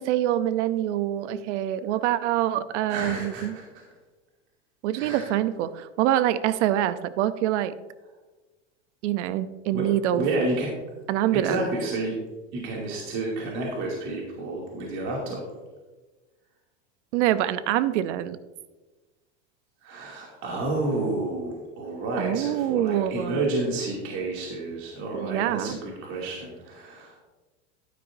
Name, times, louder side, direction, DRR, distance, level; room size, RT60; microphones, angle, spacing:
voice 1, 0.0-3.6 4.8-7.8 9.0-10.2 11.1-11.6 17.1-18.4 22.2-23.5 25.1-25.8, right 12 dB, 70° right, 14 dB, 0.7 m, -25 dB
voice 2, 2.9-3.6 4.9-5.3 9.7-9.9 10.1-10.7 11.3-12.1 12.5-15.4 19.8-27.2, right 2 dB, 50° right, -3 dB, 2.5 m, -30 dB
12.0 x 9.8 x 2.6 m, 1.2 s
supercardioid pair, 120°, 37 cm